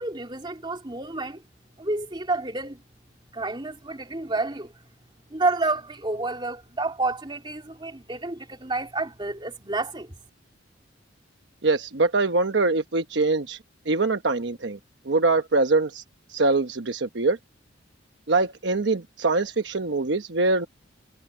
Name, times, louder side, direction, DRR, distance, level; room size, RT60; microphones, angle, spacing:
voice 1, 0.0-1.4 1.8-2.8 3.3-4.7 5.3-10.1, right 2 dB, 25° right, 3.1 m, -29 dB
voice 2, 11.6-13.6 13.9-14.8 15.0-16.0 16.3-17.4 18.3-20.7, right 3 dB, 70° right, 1.0 m, -23 dB
head